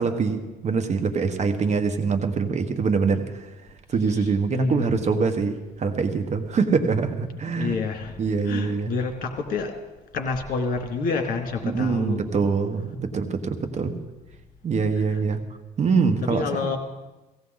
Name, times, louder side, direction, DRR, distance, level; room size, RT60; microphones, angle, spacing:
voice 1, 0.0-3.5 3.9-7.8 8.2-8.9 11.6-13.9 14.6-15.4 15.8-16.4, right 5 dB, 40° right, 7 dB, 1.3 m, -24 dB
voice 2, 4.1-5.1 7.5-8.2 8.4-9.8 10.1-12.2 15.1-15.2 16.2-16.8, left 4 dB, 55° left, 5 dB, 2.4 m, -28 dB
17.5 x 16.0 x 4.0 m, 1.1 s
cardioid pair, 110°, 17 cm